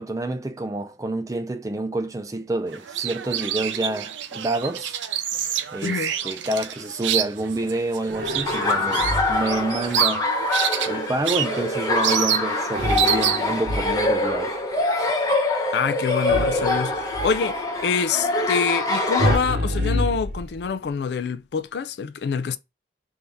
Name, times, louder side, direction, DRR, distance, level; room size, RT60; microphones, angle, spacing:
voice 1, 0.0-5.0 5.7-10.3 10.9-14.6, right 2 dB, 20° right, 0.3 m, -28 dB
sound 1, 2.7-13.6, right 10 dB, 85° right, 0.5 m, -28 dB
sound 2, 8.1-9.6 12.8-14.3 16.3-17.5 19.2-20.9, equal, 55° right, 0.9 m, -27 dB
Laughter, 8.5-19.4, left 2 dB, 20° left, 0.7 m, -24 dB
voice 2, 15.7-22.6, left 6 dB, 65° left, 0.3 m, -26 dB
3.5 x 2.7 x 4.4 m
head